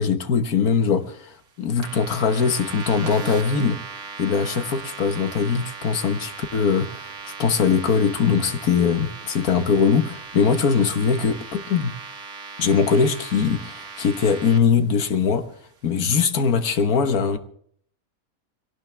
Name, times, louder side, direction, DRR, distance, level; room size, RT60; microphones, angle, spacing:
voice 1, 0.0-1.3 1.6-3.8 4.2-11.9 12.6-15.5 15.8-17.4, left 6 dB, 75° left, 1.6 m, -21 dB
sound 1, 1.8-14.6, right 5 dB, 55° right, 1.8 m, -38 dB
22.0 x 18.0 x 3.3 m
omnidirectional pair, 1.6 m